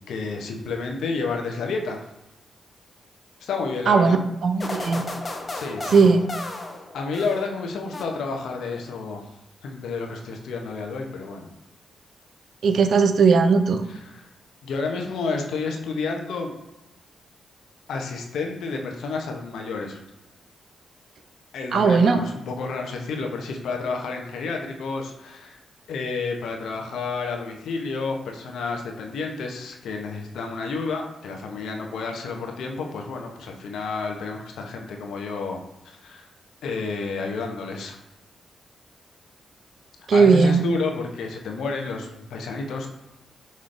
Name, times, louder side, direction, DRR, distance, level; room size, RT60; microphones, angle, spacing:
voice 1, 0.1-2.0 3.4-4.2 5.5-6.1 6.9-9.3 9.6-11.5 13.9-14.3 14.6-16.5 17.9-20.0 21.5-25.6 25.9-36.3 36.6-38.0 40.1-42.9, left 4 dB, 80° left, 2 dB, 0.7 m, -30 dB
voice 2, 3.9-5.0 5.9-6.3 12.6-13.8 21.7-22.2 40.1-40.6, right 5 dB, 65° right, 8 dB, 0.4 m, -18 dB
sound 1, 4.6-7.6 7.9-8.6, left 2 dB, 40° left, 0.7 m, -34 dB
5.4 x 3.1 x 2.5 m, 0.95 s
supercardioid pair, 55°, 0 cm